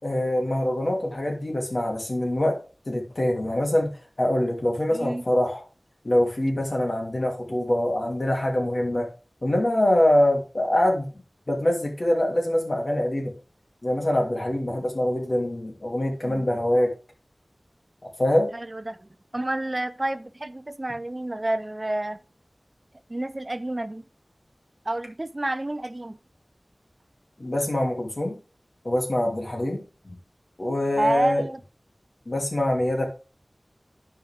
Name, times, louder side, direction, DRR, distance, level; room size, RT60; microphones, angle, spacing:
voice 1, 0.0-2.6 2.9-3.9 4.2-5.6 6.0-9.1 9.4-11.1 11.5-13.3 13.8-16.9 18.2-18.5 27.4-28.4 28.8-30.1 30.6-31.4 32.3-33.1, left 1 dB, 55° left, 2.8 m, -24 dB
voice 2, 4.9-5.2 14.7-14.8 16.2-16.4 18.5-22.2 23.1-24.1 24.8-26.2 31.0-31.6, right 1 dB, 40° right, 0.5 m, -29 dB
12.0 x 4.8 x 3.6 m
wide cardioid pair, 55°, 0 cm